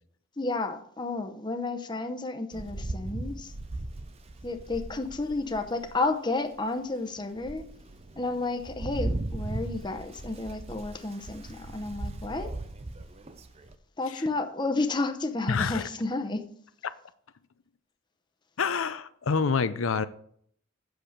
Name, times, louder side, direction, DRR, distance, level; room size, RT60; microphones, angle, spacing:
voice 1, 0.4-3.5 4.4-7.6 8.2-12.5 14.0-16.5, left 3 dB, 20° left, 7 dB, 0.8 m, -31 dB
Rain, 2.5-6.0 6.6-6.7 7.2-13.8, right 2 dB, 30° right, 0.6 m, -38 dB
voice 2, 15.5-15.9 18.6-20.1, left 5 dB, 85° left, 12 dB, 0.6 m, -27 dB
8.0 x 6.9 x 6.4 m, 0.64 s
head